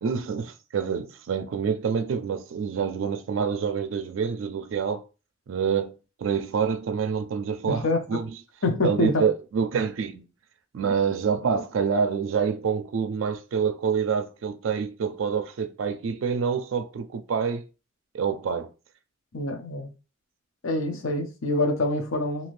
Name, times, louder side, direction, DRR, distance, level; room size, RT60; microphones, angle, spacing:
voice 1, 0.0-5.0 5.5-8.3 8.8-10.2 10.7-17.7 18.1-18.7, right 6 dB, 75° right, 0.4 m, -27 dB
voice 2, 7.7-8.2 8.6-9.2 19.3-19.9 20.6-22.5, left 2 dB, 85° left, 0.7 m, -26 dB
2.7 x 2.5 x 3.2 m
head